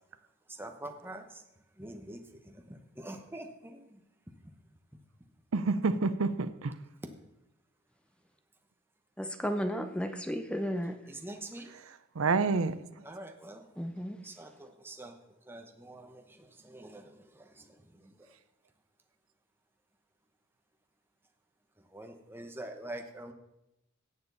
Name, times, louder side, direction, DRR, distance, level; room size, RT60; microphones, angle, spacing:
voice 1, 0.6-1.2 1.8-3.9 11.1-11.7 13.0-13.7 14.2-15.1 15.5-17.6 18.0-18.1 21.9-23.3, right 1 dB, 10° right, 5 dB, 1.0 m, -45 dB
voice 2, 5.5-6.7 12.2-12.7, right 4 dB, 85° right, 13 dB, 0.6 m, -28 dB
voice 3, 9.2-11.0 13.8-14.2, equal, 5° left, 8 dB, 0.6 m, -33 dB
17.0 x 7.0 x 4.0 m, 0.88 s
head